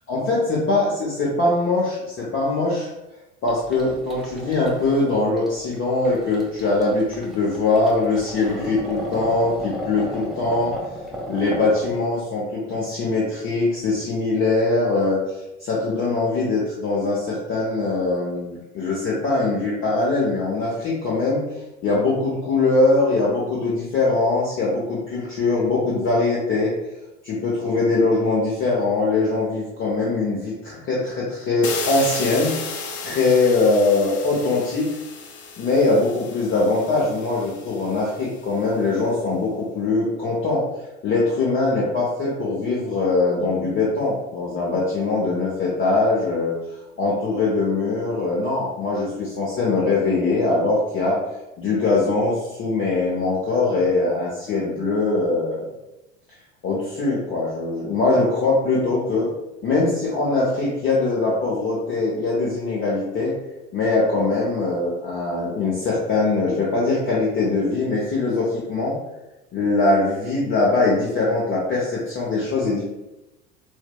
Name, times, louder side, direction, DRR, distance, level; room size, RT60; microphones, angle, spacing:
voice 1, 0.1-2.9 3.4-10.7 11.3-15.2 15.6-21.4 21.8-26.7 27.2-32.7 33.0-34.9 35.6-40.6 41.0-46.5 47.0-51.2 51.6-55.6 56.6-59.3 59.6-63.3 63.7-68.9 69.5-72.8, left 3 dB, 35° left, -5 dB, 0.8 m, -22 dB
sound 1, 3.5-12.0, equal, ahead, 0.6 m, -34 dB
sound 2, 31.6-38.5, left 4 dB, 65° left, 0.5 m, -34 dB
4.2 x 2.0 x 2.2 m, 0.96 s
figure-of-eight pair, 65°, 34 cm